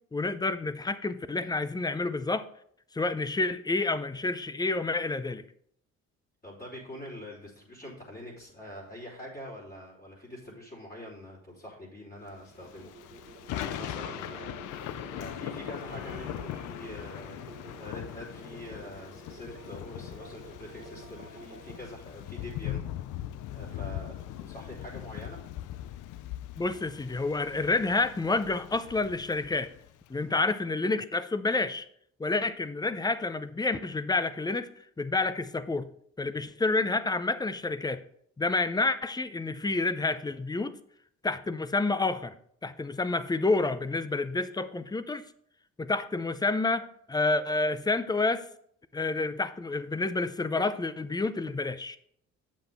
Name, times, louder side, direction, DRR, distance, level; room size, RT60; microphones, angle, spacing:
voice 1, 0.1-2.5 2.9-5.4 26.6-29.7 30.1-31.9 32.2-34.7 35.0-35.9 36.2-38.0 38.4-40.7 41.2-42.3 42.6-45.2 45.8-48.5 48.9-52.0, left 3 dB, 15° left, 13 dB, 0.5 m, -29 dB
voice 2, 6.4-25.4 30.2-30.4, equal, 30° left, -5 dB, 3.5 m, -45 dB
sound 1, 12.2-21.8, right 3 dB, 30° right, 2.0 m, -50 dB
Thunder / Rain, 12.6-30.1, left 12 dB, 85° left, 0.5 m, -40 dB
7.9 x 7.3 x 3.4 m, 0.66 s
cardioid pair, 90°, 30 cm